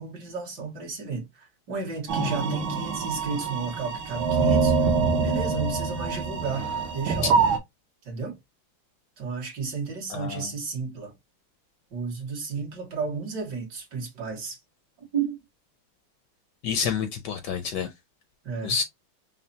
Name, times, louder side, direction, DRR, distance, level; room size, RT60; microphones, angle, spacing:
voice 1, 0.0-4.9 5.2-7.4 8.1-8.4 9.2-11.1 11.9-14.6 15.0-15.4 18.4-18.8, right 5 dB, 60° right, 1.9 m, -33 dB
sound 1, 2.1-7.6, right 5 dB, 80° right, 1.6 m, -25 dB
voice 2, 10.1-10.5 16.6-17.9 18.6-18.8, left 6 dB, 75° left, 1.0 m, -28 dB
5.5 x 2.1 x 2.7 m
omnidirectional pair, 2.2 m